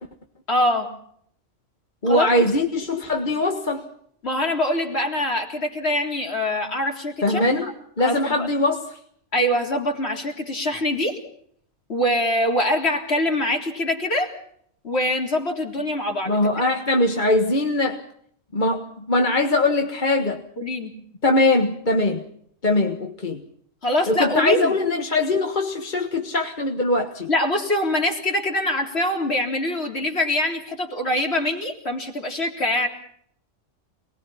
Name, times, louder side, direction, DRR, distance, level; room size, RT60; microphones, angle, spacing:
voice 1, 0.5-0.9 2.1-2.4 4.2-7.7 8.0-8.5 9.3-11.2 11.9-14.3 14.8-16.4 20.6-20.9 23.8-24.7 27.3-32.9, left 1 dB, 55° left, 2 dB, 4.1 m, -24 dB
voice 2, 2.0-3.9 7.2-9.0 16.3-18.0 18.5-20.4 21.2-22.2 22.6-23.4 24.1-27.3, left 2 dB, 40° left, 4 dB, 1.8 m, -21 dB
28.0 x 20.5 x 5.7 m, 0.66 s
omnidirectional pair, 1.3 m